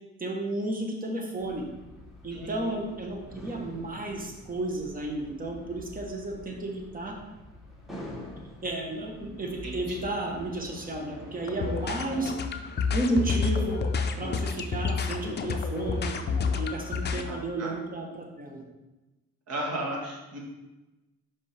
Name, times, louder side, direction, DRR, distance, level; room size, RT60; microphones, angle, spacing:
voice 1, 0.2-1.7 2.2-7.2 8.6-12.3 12.9-13.8 14.2-16.2 16.6-18.6, right 1 dB, 30° right, 0 dB, 1.2 m, -32 dB
sound 1, 1.4-16.7, left 1 dB, ahead, 1.5 m, -46 dB
voice 2, 2.3-2.7 9.4-10.0 17.0-17.7 19.5-20.4, right 1 dB, 55° right, -1 dB, 1.6 m, -36 dB
sound 2, 11.4-17.2, left 5 dB, 35° left, 0.5 m, -29 dB
5.2 x 5.2 x 3.4 m, 1.1 s
cardioid pair, 90°, 30 cm